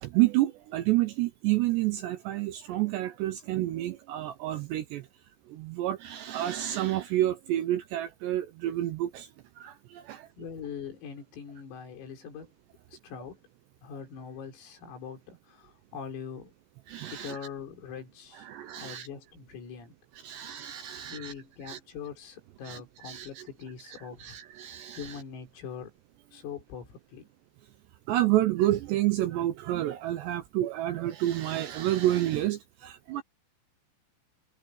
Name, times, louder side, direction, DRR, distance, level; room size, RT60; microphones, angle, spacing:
voice 1, 0.0-5.1 5.5-9.3 9.6-10.3 16.9-17.4 18.4-19.1 20.2-21.3 21.7-21.8 22.6-23.4 23.9-25.2 28.1-33.2, right 14 dB, 80° right, 2.6 m, -29 dB
voice 2, 10.4-12.5 12.9-13.4 13.8-16.5 17.1-18.5 18.8-20.0 21.1-24.4 25.0-25.9 26.3-27.3, left 7 dB, 85° left, 7.7 m, -42 dB
omnidirectional pair, 5.9 m